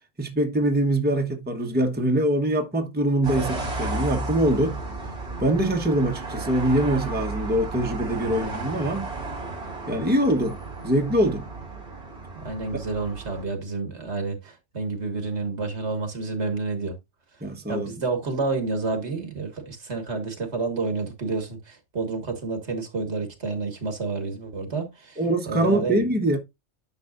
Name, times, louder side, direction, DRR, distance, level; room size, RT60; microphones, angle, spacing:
voice 1, 0.2-4.8 5.4-9.1 9.9-10.6 10.8-11.5 17.4-17.9 25.2-26.4, right 1 dB, 10° right, 1.0 m, -23 dB
sound 1, 3.2-13.4, right 3 dB, 50° right, 3.0 m, -33 dB
voice 2, 12.4-17.0 17.7-25.2 25.5-26.0, right 3 dB, 65° right, 2.0 m, -29 dB
10.0 x 5.8 x 2.5 m
omnidirectional pair, 1.2 m